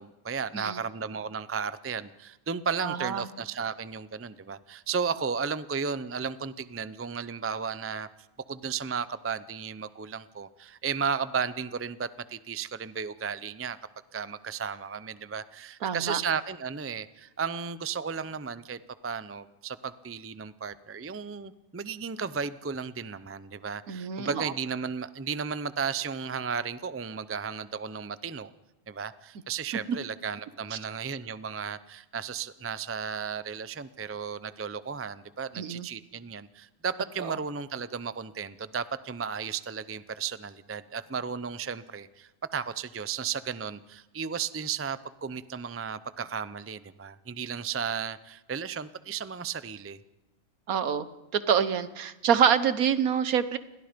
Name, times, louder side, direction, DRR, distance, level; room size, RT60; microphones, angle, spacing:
voice 1, 0.0-8.1 8.5-13.8 14.1-28.5 28.9-50.0, right 6 dB, 20° right, 14 dB, 0.3 m, -34 dB
voice 2, 2.8-3.3 15.8-16.2 23.9-24.4 30.7-30.8 35.5-35.9 37.2-37.3 50.7-51.1 51.3-53.6, right 8 dB, 75° right, 13 dB, 1.5 m, -26 dB
29.5 x 22.0 x 5.2 m, 1.0 s
omnidirectional pair, 1.5 m